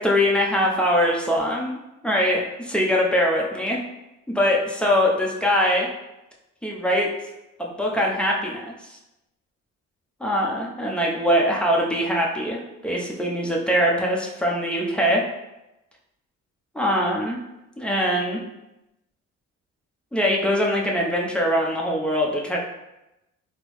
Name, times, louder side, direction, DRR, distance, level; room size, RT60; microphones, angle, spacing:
voice 1, 0.0-1.8 2.0-3.8 4.3-5.9 6.6-7.1 7.6-9.0 10.2-15.2 16.7-17.4 17.8-18.4 20.1-22.6, equal, 5° left, -2 dB, 0.6 m, -22 dB
3.6 x 2.0 x 3.0 m, 0.94 s
cardioid pair, 90°, 30 cm